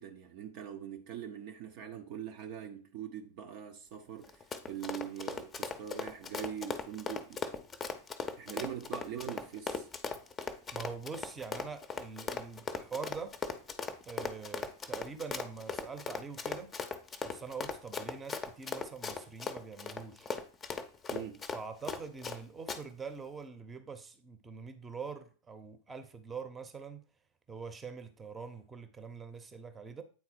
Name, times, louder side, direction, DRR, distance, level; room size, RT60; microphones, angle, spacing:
voice 1, 0.0-7.5 8.4-9.9 21.1-21.5, right 9 dB, 45° right, 0.6 m, -43 dB
Run, 4.2-22.4 22.7-22.8, left 5 dB, 20° left, 0.7 m, -38 dB
voice 2, 10.7-13.4 14.0-16.7 17.2-20.3 21.5-27.0 27.5-30.0, right 5 dB, 15° right, 0.9 m, -44 dB
8.6 x 4.0 x 4.4 m
figure-of-eight pair, 90°, 0 cm